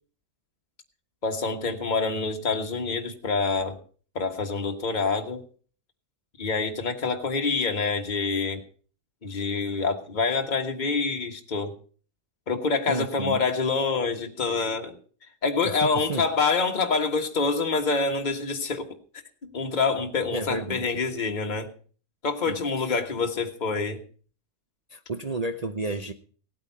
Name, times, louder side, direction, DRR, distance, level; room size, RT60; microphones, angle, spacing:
voice 1, 1.2-3.8 4.1-5.4 6.4-8.6 9.2-11.7 12.5-15.0 15.4-18.9 19.5-21.7 22.2-24.0, left 4 dB, 30° left, 3 dB, 1.5 m, -26 dB
voice 2, 12.9-13.4 15.6-16.2 20.3-21.0 22.5-23.0 24.9-26.1, right 2 dB, 35° right, 5 dB, 0.7 m, -32 dB
17.5 x 8.8 x 5.7 m, 0.42 s
omnidirectional pair, 1.7 m